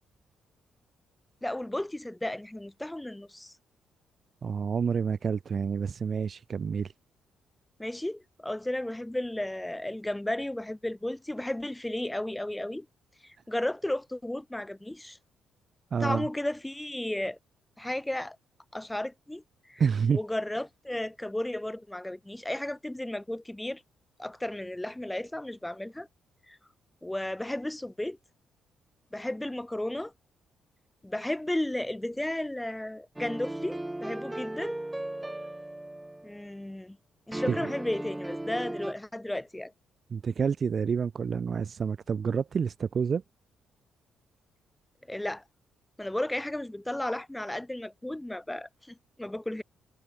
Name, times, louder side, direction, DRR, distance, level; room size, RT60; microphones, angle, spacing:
voice 1, 1.4-3.5 7.8-12.9 13.2-15.2 16.0-17.4 17.8-18.4 18.7-19.4 19.7-19.8 20.1-23.8 24.2-26.1 26.5-26.6 27.0-28.2 29.1-30.1 31.0-34.8 36.2-37.0 37.3-39.7 45.1-45.4 46.0-49.6, left 1 dB, 10° left, 2.3 m, -34 dB
voice 2, 4.4-6.9 15.9-16.3 19.8-20.2 37.5-37.7 40.1-43.2, right 6 dB, 45° right, 0.9 m, -28 dB
sound 1, 33.2-36.5 37.3-38.9, right 1 dB, 10° right, 0.8 m, -37 dB
cardioid pair, 90°, 0 cm